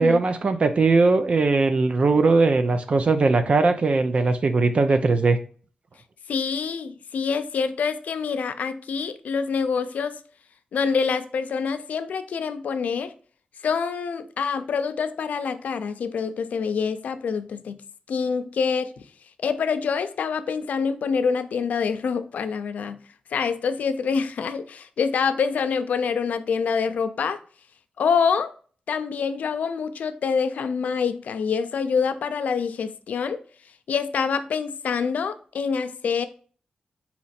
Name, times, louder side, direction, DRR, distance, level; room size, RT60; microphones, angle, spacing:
voice 1, 0.0-5.4, right 3 dB, 50° right, 0.5 m, -20 dB
voice 2, 6.3-10.1 10.7-13.1 13.6-17.8 18.1-18.9 19.4-23.0 23.3-27.4 28.0-28.5 28.9-33.4 33.9-36.2, left 6 dB, 85° left, 0.4 m, -26 dB
4.1 x 2.9 x 4.1 m
cardioid pair, 80°, 3 cm